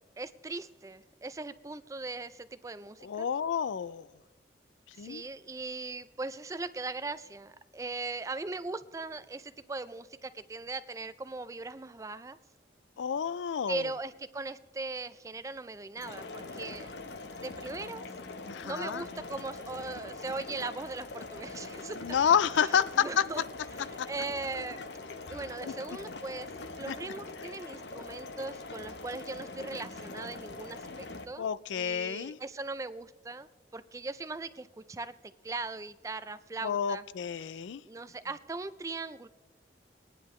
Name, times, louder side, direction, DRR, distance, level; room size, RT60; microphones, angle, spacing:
voice 1, 0.2-3.3 5.0-12.4 13.7-16.9 17.4-18.1 18.6-22.1 22.6-23.4 23.9-24.9 25.3-26.5 26.8-35.2 35.4-37.0 37.4-37.6 37.8-39.3, right 3 dB, 15° right, 14 dB, 0.3 m, -39 dB
voice 2, 3.0-4.1 5.0-5.2 13.0-13.9 18.4-19.0 22.0-23.2 24.0-24.1 25.7-25.8 26.9-27.0 31.4-32.4 36.6-37.8, left 7 dB, 85° left, 17 dB, 0.4 m, -29 dB
sound 1, 16.0-31.2, left 3 dB, 70° left, 0.9 m, -43 dB
20.0 x 10.0 x 3.1 m, 1.1 s
head